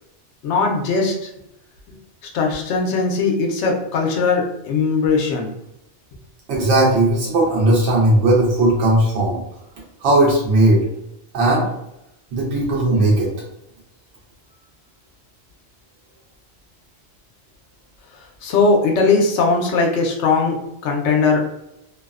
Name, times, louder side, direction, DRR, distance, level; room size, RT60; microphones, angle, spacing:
voice 1, 0.4-1.1 2.3-5.5 18.4-20.6 20.8-21.4, left 4 dB, 80° left, 1 dB, 0.9 m, -19 dB
voice 2, 6.5-9.4 10.0-10.8 11.3-11.7 12.3-13.3, right 1 dB, 75° right, -4 dB, 0.9 m, -17 dB
2.6 x 2.0 x 2.3 m, 0.83 s
omnidirectional pair, 1.2 m